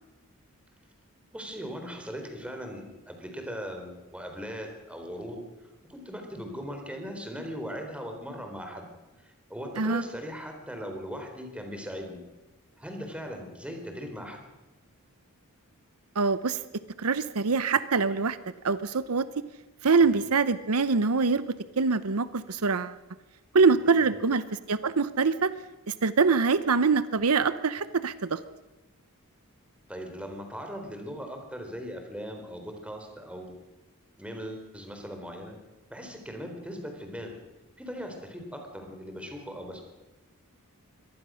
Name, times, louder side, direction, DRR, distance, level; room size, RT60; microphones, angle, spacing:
voice 1, 1.3-8.9 9.2-12.2 12.8-14.4 20.0-20.2 23.7-24.2 29.9-33.5 34.2-35.5 35.9-37.4 37.8-39.8, equal, 5° right, 4 dB, 4.0 m, -39 dB
voice 2, 16.2-16.6 17.0-18.4 18.6-19.3 19.8-21.4 21.8-22.9 23.5-25.5 25.9-28.4, right 4 dB, 75° right, 14 dB, 0.8 m, -24 dB
24.0 x 19.0 x 6.4 m, 1.1 s
head